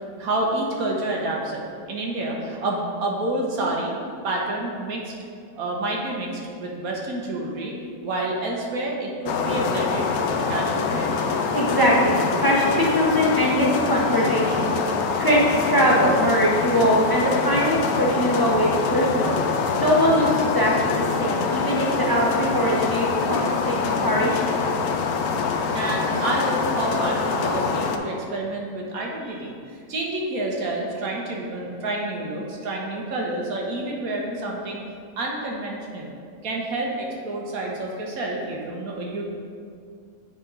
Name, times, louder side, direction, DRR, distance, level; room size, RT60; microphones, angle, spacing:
voice 1, 0.2-1.6 1.9-3.9 4.2-5.0 5.6-7.8 8.0-10.1 10.4-11.2 25.7-29.5 29.9-34.8 35.2-36.1 36.4-39.2, right 2 dB, 75° right, -2 dB, 1.3 m, -28 dB
sound 1, 9.3-28.0, left 5 dB, 80° left, 1.1 m, -25 dB
voice 2, 11.5-14.7 15.2-19.4 19.8-24.6, equal, 25° left, -4 dB, 0.5 m, -22 dB
9.3 x 3.6 x 3.8 m, 2.2 s
omnidirectional pair, 1.6 m